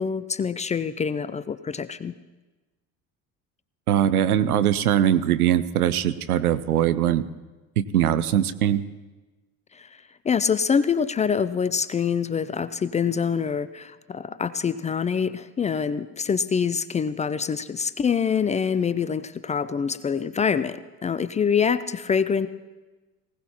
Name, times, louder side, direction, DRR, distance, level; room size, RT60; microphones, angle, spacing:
voice 1, 0.0-2.1 9.7-9.9 10.2-22.5, left 6 dB, 20° left, 14 dB, 0.4 m, -25 dB
voice 2, 3.9-7.3 7.8-8.8, right 10 dB, 90° right, 15 dB, 0.6 m, -21 dB
19.5 x 17.5 x 2.9 m, 1.2 s
hypercardioid pair, 65°, 43 cm